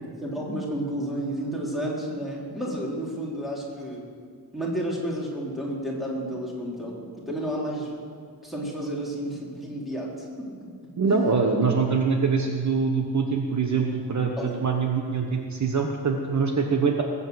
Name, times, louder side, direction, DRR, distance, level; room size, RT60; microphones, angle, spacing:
voice 1, 0.2-4.1 4.5-7.9 8.4-10.7 11.1-11.4 14.4-14.6, right 1 dB, ahead, -4 dB, 3.5 m, -31 dB
voice 2, 11.0-17.0, right 5 dB, 45° right, 2 dB, 1.2 m, -24 dB
20.0 x 8.4 x 7.8 m, 2.2 s
wide cardioid pair, 165°, 39 cm